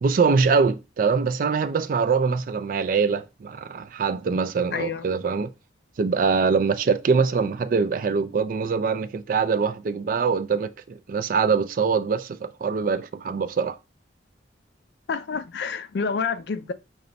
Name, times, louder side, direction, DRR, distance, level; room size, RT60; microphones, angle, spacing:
voice 1, 0.0-5.5 6.0-13.8, right 5 dB, 50° right, 0.3 m, -23 dB
voice 2, 4.7-5.1 15.1-16.7, left 5 dB, 70° left, 0.4 m, -28 dB
5.1 x 2.2 x 3.9 m
head